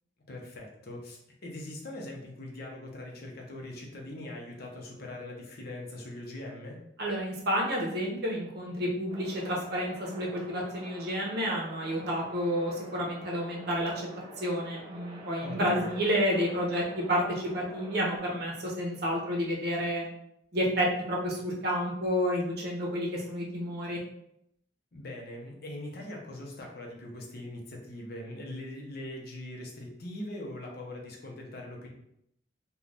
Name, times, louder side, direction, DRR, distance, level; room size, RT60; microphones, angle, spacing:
voice 1, 0.3-6.8 15.4-15.9 24.9-31.9, left 1 dB, 60° left, 0 dB, 0.7 m, -41 dB
voice 2, 7.0-14.1 14.4-20.0 20.5-24.0, equal, 60° right, -2 dB, 0.8 m, -30 dB
sound 1, 9.1-18.2, right 1 dB, 25° right, 0.6 m, -47 dB
2.5 x 2.3 x 3.2 m, 0.76 s
head